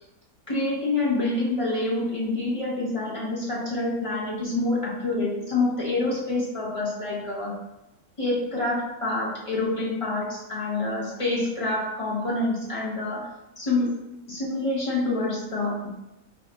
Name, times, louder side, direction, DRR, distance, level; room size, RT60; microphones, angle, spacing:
voice 1, 0.5-7.6 8.2-13.3 13.6-14.0 14.3-15.8, left 2 dB, 35° left, -6 dB, 0.5 m, -27 dB
5.3 x 2.6 x 2.2 m, 0.91 s
omnidirectional pair, 1.6 m